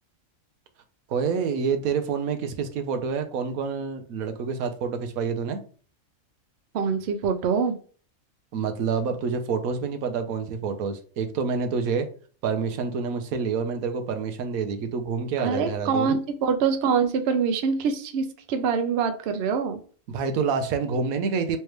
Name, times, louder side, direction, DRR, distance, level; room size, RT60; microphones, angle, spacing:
voice 1, 1.1-5.6 8.5-12.1 12.4-16.2 20.1-21.6, right 5 dB, 90° right, 7 dB, 1.1 m, -27 dB
voice 2, 6.7-7.8 15.4-19.8, right 6 dB, 60° right, 7 dB, 0.7 m, -24 dB
3.3 x 3.2 x 3.1 m, 0.42 s
omnidirectional pair, 1.4 m